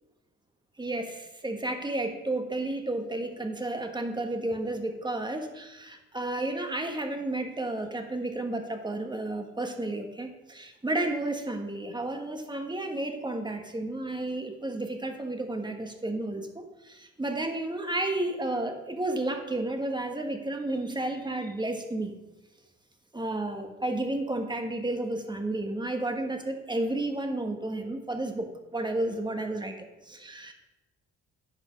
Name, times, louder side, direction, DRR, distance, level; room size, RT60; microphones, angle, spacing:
voice 1, 0.8-22.2 23.1-29.8 30.1-30.5, right 2 dB, 15° right, 5 dB, 1.2 m, -32 dB
10.0 x 5.3 x 5.0 m, 1.0 s
cardioid pair, 90°, 30 cm